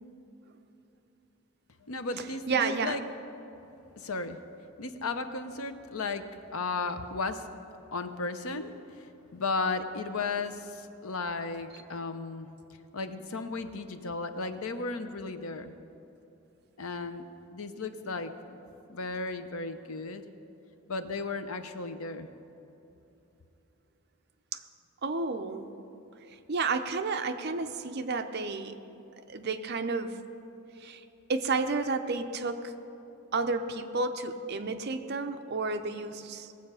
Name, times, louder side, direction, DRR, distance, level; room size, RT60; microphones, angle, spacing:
voice 1, 1.8-3.0 4.0-4.4 4.8-6.3 6.5-7.5 7.9-12.5 12.9-15.7 16.8-17.2 17.5-18.6 18.9-20.2 20.9-22.3, left 3 dB, 75° left, 9 dB, 0.8 m, -35 dB
voice 2, 2.5-3.0 24.5-24.6 25.0-25.7 26.5-28.8 29.3-30.2 30.8-31.0 31.3-32.7 33.3-36.5, right 4 dB, 50° right, 8 dB, 0.6 m, -31 dB
19.0 x 7.7 x 5.6 m, 2.9 s
head